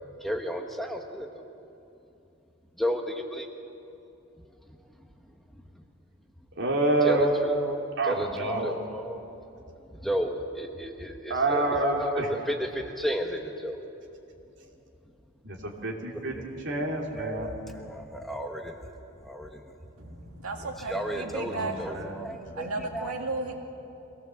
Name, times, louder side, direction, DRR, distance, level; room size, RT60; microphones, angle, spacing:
voice 1, 0.2-1.3 2.8-3.5 4.7-4.8 5.5-5.8 7.0-9.3 9.9-13.8 16.1-16.4 16.7-16.8 17.2-18.9 19.2-19.7 20.0-20.1 20.6-23.1, equal, ahead, 3 dB, 1.2 m, -33 dB
voice 2, 6.6-7.3 8.0-8.7 11.3-12.3 15.4-17.5 21.5-22.1, right 2 dB, 55° right, 0 dB, 2.9 m, -28 dB
voice 3, 20.0-23.6, right 3 dB, 90° right, 3 dB, 2.2 m, -35 dB
24.5 x 17.0 x 7.6 m, 2.8 s
head